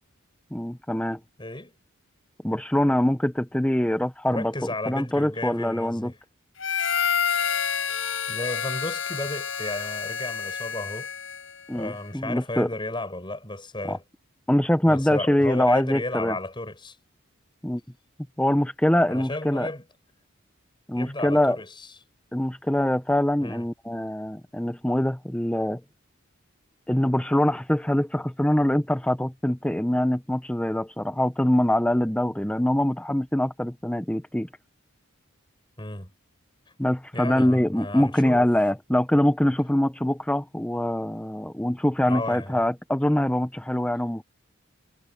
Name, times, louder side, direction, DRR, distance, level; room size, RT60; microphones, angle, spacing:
voice 1, 0.5-1.2 2.4-4.5 4.9-6.1 11.7-12.7 13.9-14.0 14.5-16.4 17.6-17.8 18.4-19.7 20.9-21.6 22.3-25.8 26.9-34.5 36.8-44.2, left 1 dB, 5° left, 0.8 m, -24 dB
voice 2, 1.4-1.7 4.3-6.2 8.3-11.1 11.7-14.0 14.9-17.0 19.1-19.8 20.9-21.9 23.4-23.7 35.8-36.1 37.1-38.4 42.1-42.6, left 2 dB, 20° left, 6.1 m, -33 dB
Harmonica, 6.6-11.6, left 7 dB, 65° left, 6.7 m, -28 dB
head